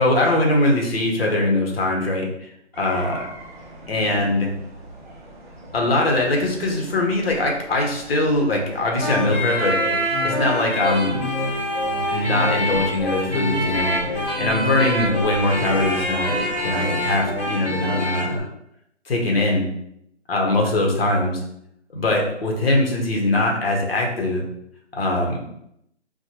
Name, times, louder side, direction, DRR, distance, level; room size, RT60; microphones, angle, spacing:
voice 1, 0.0-2.5 2.8-3.3 3.9-4.5 5.7-11.3 12.1-16.4 16.6-18.4 19.1-19.7 20.3-21.4 21.9-24.4 24.9-25.4, left 2 dB, 55° left, 0 dB, 0.8 m, -22 dB
sound 1, 2.7-17.5, right 1 dB, 45° right, 0.6 m, -42 dB
sound 2, 9.0-18.4, left 1 dB, 20° left, 1.1 m, -25 dB
2.9 x 2.2 x 2.8 m, 0.75 s
hypercardioid pair, 165°, 35 cm